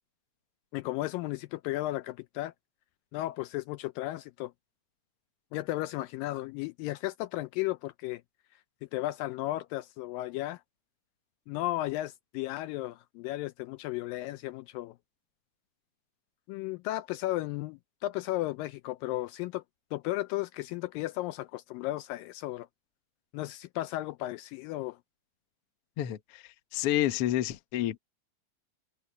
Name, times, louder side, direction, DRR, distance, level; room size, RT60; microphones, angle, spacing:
voice 1, 0.7-2.5 3.1-4.5 5.5-8.2 8.9-10.6 11.5-15.0 16.5-19.6 19.9-22.7 23.3-25.0, left 17 dB, 80° left, 2.1 m, -34 dB
voice 2, 26.0-26.4 26.7-28.0, left 13 dB, 65° left, 1.5 m, -29 dB
open air
omnidirectional pair, 4.3 m